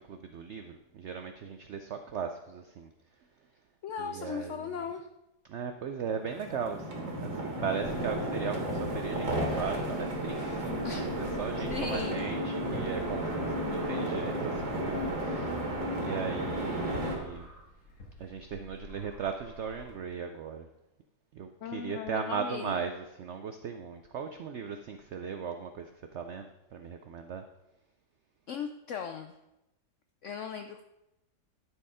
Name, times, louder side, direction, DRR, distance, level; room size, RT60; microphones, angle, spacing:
voice 1, 0.0-2.9 4.0-4.8 5.5-15.7 16.0-17.5 18.2-20.7 21.3-27.4, right 6 dB, 90° right, 6 dB, 0.6 m, -38 dB
voice 2, 3.8-5.1 10.8-11.0 11.6-12.2 21.6-22.7 28.5-29.3 30.2-30.8, left 7 dB, 80° left, 7 dB, 0.6 m, -37 dB
sound 1, 6.2-17.2, right 1 dB, 50° right, 2.0 m, -33 dB
sound 2, 7.8-19.9, left 2 dB, 55° left, 2.3 m, -50 dB
11.0 x 4.5 x 4.9 m, 0.91 s
omnidirectional pair, 1.8 m